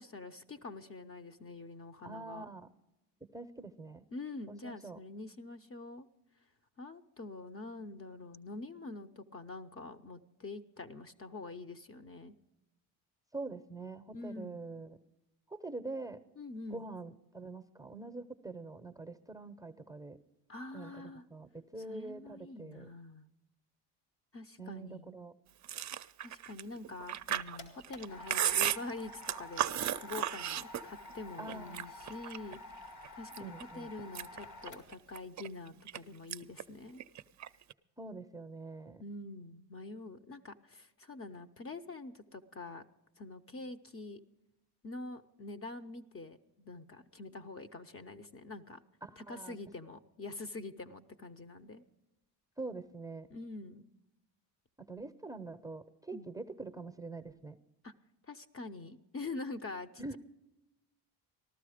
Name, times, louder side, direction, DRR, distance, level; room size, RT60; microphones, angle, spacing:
voice 1, 0.0-2.5 4.1-6.1 6.8-12.4 14.1-14.6 16.4-16.8 20.5-21.2 21.9-23.3 24.3-25.1 26.2-32.6 33.1-37.0 39.0-42.8 43.2-44.2 44.8-48.8 49.2-51.8 53.3-53.8 56.1-56.3 57.8-57.9 58.3-60.2, left 3 dB, 30° left, 9 dB, 0.8 m, -45 dB
voice 2, 2.0-2.7 3.3-4.0 4.5-5.0 13.3-15.0 15.5-16.2 16.7-20.2 20.7-22.9 24.6-25.3 31.4-31.9 33.4-33.9 38.0-39.0 49.0-49.6 52.6-53.3 54.8-57.6 60.0-60.2, right 3 dB, 10° right, 9 dB, 0.7 m, -44 dB
Chewing mastication, 25.6-31.1 31.5-32.6 33.0-33.6 34.0-36.0 36.3-36.6 36.9-37.7, right 11 dB, 45° right, 0.5 m, -35 dB
sound 1, 27.0-35.2, left 2 dB, 75° left, 2.2 m, -50 dB
14.5 x 12.5 x 5.0 m, 0.93 s
supercardioid pair, 75°, 42 cm